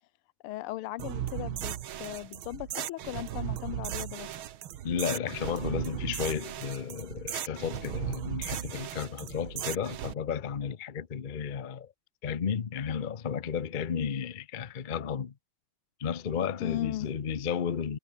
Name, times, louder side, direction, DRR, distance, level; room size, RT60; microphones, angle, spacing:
voice 1, 0.4-4.3 16.6-17.1, left 16 dB, 90° left, 1.6 m, -37 dB
sound 1, 1.0-10.1, right 11 dB, 70° right, 1.9 m, -36 dB
voice 2, 4.8-11.9 12.2-15.3 16.0-18.0, left 7 dB, 60° left, 0.5 m, -33 dB
omnidirectional pair, 2.4 m